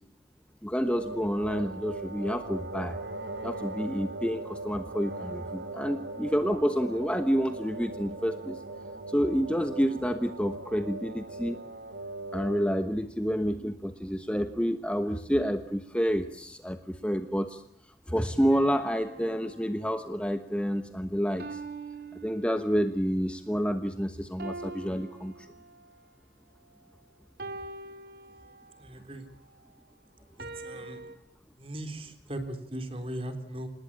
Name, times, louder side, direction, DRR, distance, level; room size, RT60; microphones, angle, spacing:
voice 1, 0.6-3.0 3.4-8.6 9.1-11.6 12.3-17.6 18.1-21.6 22.2-25.5, equal, 5° left, 8 dB, 1.1 m, -29 dB
sound 1, 0.8-13.0, right 2 dB, 80° right, 3.7 m, -40 dB
sound 2, 18.5-20.3 21.4-23.0 24.4-26.1 27.4-28.9 30.4-31.2, right 3 dB, 60° right, 2.9 m, -43 dB
voice 2, 28.8-29.3 30.6-31.0 31.6-33.7, right 1 dB, 30° right, 8 dB, 3.7 m, -38 dB
27.0 x 20.0 x 8.7 m, 0.67 s
head